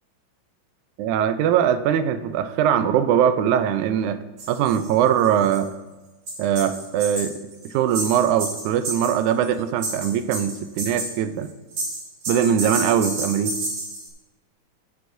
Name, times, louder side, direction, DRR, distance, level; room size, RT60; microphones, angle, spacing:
voice 1, 1.0-4.2 4.5-5.7 6.4-7.3 7.7-11.5 12.3-13.5, right 9 dB, 80° right, 10 dB, 1.9 m, -21 dB
sound 1, 4.4-4.9 5.2-5.6 6.3-9.5 9.8-11.1 11.4-14.1, right 2 dB, 55° right, 3.2 m, -30 dB
16.0 x 8.2 x 2.7 m, 1.1 s
omnidirectional pair, 3.8 m